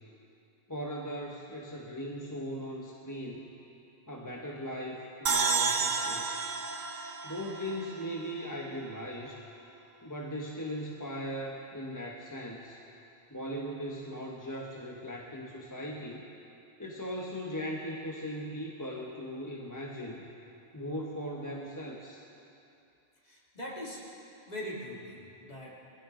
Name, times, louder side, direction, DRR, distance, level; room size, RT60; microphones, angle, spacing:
voice 1, 0.7-3.5 4.1-6.4 7.2-9.4 10.0-12.8 13.3-16.3 16.8-20.3 20.7-22.2, equal, 15° left, -3 dB, 1.1 m, -39 dB
sound 1, 5.3-8.6, right 5 dB, 45° right, 0.8 m, -31 dB
voice 2, 23.2-24.0 24.5-25.8, left 1 dB, 35° left, -5 dB, 2.8 m, -41 dB
21.5 x 16.5 x 3.8 m, 2.7 s
omnidirectional pair, 1.3 m